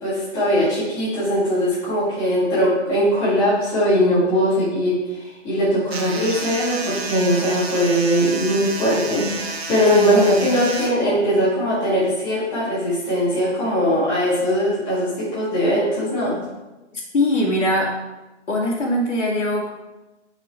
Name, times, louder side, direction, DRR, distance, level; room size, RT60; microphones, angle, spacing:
voice 1, 0.0-16.4, equal, 10° left, -11 dB, 1.8 m, -20 dB
sound 1, 5.9-10.9, right 4 dB, 55° right, 1.3 m, -30 dB
voice 2, 9.9-10.5 16.9-17.9 18.5-19.7, left 1 dB, 75° left, -2 dB, 2.4 m, -22 dB
5.9 x 5.4 x 4.6 m, 1.1 s
hypercardioid pair, 175°, 36 cm